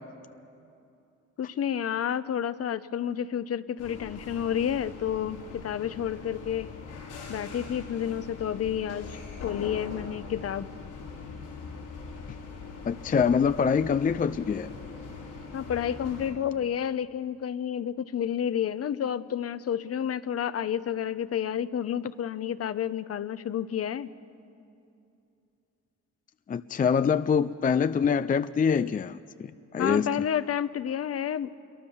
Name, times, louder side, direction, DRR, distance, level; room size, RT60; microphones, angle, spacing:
voice 1, 1.4-6.7 7.3-10.7 15.5-24.1 29.8-31.6, left 9 dB, 50° left, 14 dB, 0.9 m, -30 dB
sound 1, 3.8-16.3, left 4 dB, 90° left, 5.4 m, -42 dB
voice 2, 12.9-14.7 26.5-30.1, left 6 dB, 30° left, 13 dB, 0.5 m, -25 dB
26.5 x 23.0 x 7.2 m, 2.6 s
cardioid pair, 90°, 30 cm